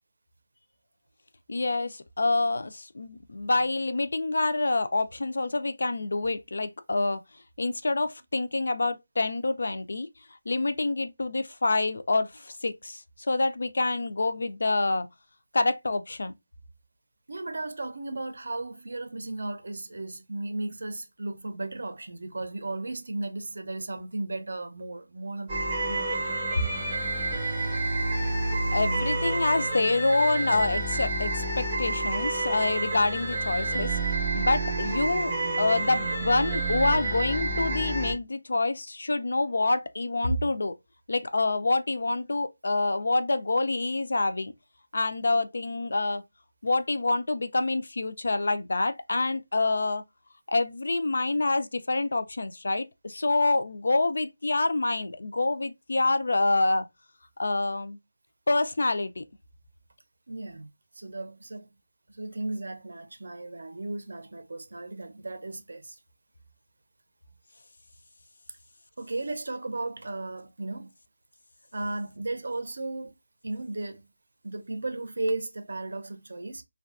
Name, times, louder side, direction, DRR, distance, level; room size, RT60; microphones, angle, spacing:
voice 1, 1.5-7.2 7.6-10.1 10.5-15.1 15.5-16.3 28.7-34.0 34.3-35.3 35.6-40.7 41.1-44.5 44.9-46.2 46.6-50.0 50.5-56.9 57.4-58.0 58.5-59.2, left 2 dB, 55° left, 0.3 m, -27 dB
voice 2, 17.3-26.4 60.3-60.7 60.9-61.7 62.1-66.0 69.0-70.9 71.7-73.1 73.4-74.0 74.4-76.6, right 2 dB, 60° right, 0.5 m, -35 dB
sound 1, 25.5-38.1, right 2 dB, 15° right, 0.5 m, -29 dB
2.5 x 2.3 x 2.3 m
figure-of-eight pair, 175°, 0 cm